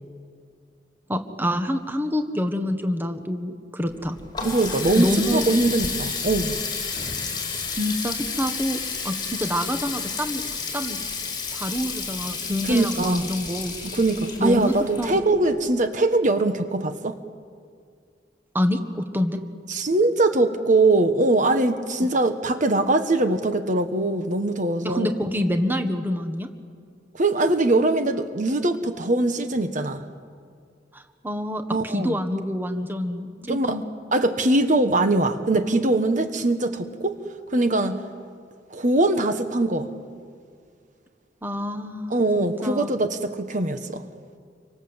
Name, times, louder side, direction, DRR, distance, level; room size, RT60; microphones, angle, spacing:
voice 1, 1.1-4.2 5.0-5.4 7.8-8.8 9.0-10.4 10.7-11.0 11.5-13.8 14.4-15.3 18.5-19.4 24.8-26.5 30.9-33.8 41.4-42.9, equal, 10° right, 7 dB, 1.5 m, -27 dB
Water tap faucet, 3.9-15.6, left 5 dB, 25° left, 4.2 m, -31 dB
voice 2, 4.4-6.6 12.6-13.2 13.8-17.2 19.7-25.1 27.1-30.0 31.7-32.2 33.4-33.8 34.1-37.2 37.5-38.0 38.7-39.9 42.1-44.0, right 2 dB, 45° right, 8 dB, 1.3 m, -22 dB
28.0 x 24.5 x 8.1 m, 2.2 s
head